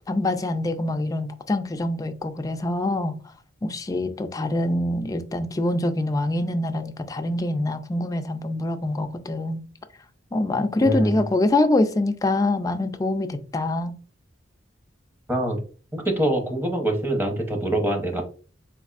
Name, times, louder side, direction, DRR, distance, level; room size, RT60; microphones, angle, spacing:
voice 1, 0.1-3.2 3.6-9.6 10.3-14.0, left 2 dB, 20° left, 0.3 m, -24 dB
voice 2, 10.8-11.2 15.3-15.6 15.9-18.2, right 1 dB, 10° right, 0.8 m, -24 dB
4.1 x 2.6 x 2.5 m
head